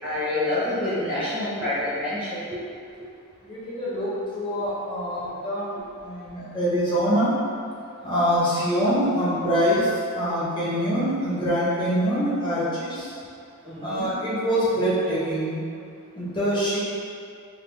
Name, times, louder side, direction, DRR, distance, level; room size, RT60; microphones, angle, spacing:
voice 1, 0.0-2.4 13.6-14.1, left 2 dB, 5° right, -13 dB, 0.7 m, -27 dB
voice 2, 3.4-7.3 8.0-13.1 13.8-15.6 16.1-16.8, equal, 20° left, -10 dB, 0.9 m, -24 dB
3.6 x 2.2 x 3.3 m, 2.4 s
head